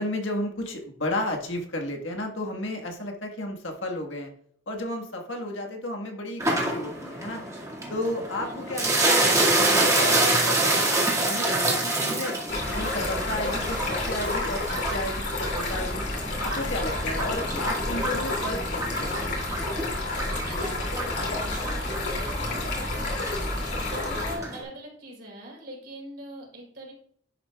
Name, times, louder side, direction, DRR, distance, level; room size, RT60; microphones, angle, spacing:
voice 1, 0.0-4.3 4.7-7.4 7.9-12.4 12.7-16.0 16.4-19.4, left 1 dB, 85° left, 2 dB, 1.6 m, -33 dB
sound 1, 6.4-24.6, right 2 dB, 15° right, 2.1 m, -28 dB
voice 2, 8.4-8.7 17.1-17.8 20.3-26.9, right 1 dB, 60° right, -2 dB, 3.9 m, -42 dB
Stream, 12.5-24.4, left 2 dB, 60° left, 2.8 m, -30 dB
11.0 x 7.4 x 2.4 m, 0.62 s
head